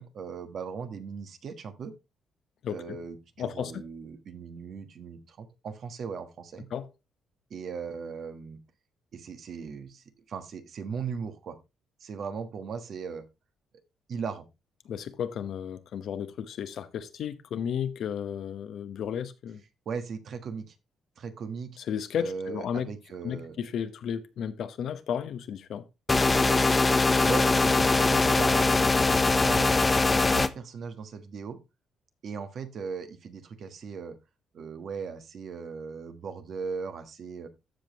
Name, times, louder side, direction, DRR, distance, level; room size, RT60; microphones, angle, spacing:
voice 1, 0.0-1.9 2.7-6.7 7.5-8.6 9.1-11.6 12.0-13.2 14.1-14.4 19.8-20.7 21.2-21.7 22.2-23.6 27.3-29.2 29.4-31.6 32.2-34.2 34.5-37.5, right 5 dB, 60° right, 1.4 m, -38 dB
voice 2, 2.6-3.0 3.4-3.7 6.7-6.9 14.8-19.6 21.8-22.9 23.2-25.8, left 8 dB, 70° left, 0.9 m, -33 dB
sound 1, 26.1-30.5, left 3 dB, 25° left, 0.7 m, -22 dB
14.5 x 5.2 x 3.0 m
cardioid pair, 90°, 0 cm